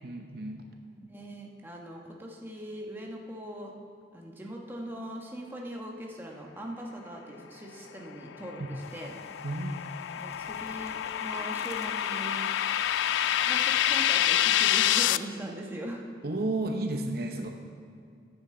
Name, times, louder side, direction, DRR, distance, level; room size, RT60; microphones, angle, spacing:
voice 1, 0.0-0.6 8.6-8.7 9.4-9.8 16.2-17.5, right 2 dB, 55° right, 4 dB, 0.8 m, -32 dB
voice 2, 1.0-3.7 4.1-9.2 10.2-12.5 13.4-16.0, right 1 dB, 10° right, -1 dB, 1.2 m, -41 dB
sound 1, 8.4-15.2, left 12 dB, 85° left, 0.3 m, -27 dB
sound 2, 8.8-14.1, left 3 dB, 35° left, 1.0 m, -50 dB
14.5 x 9.7 x 3.8 m, 2.4 s
head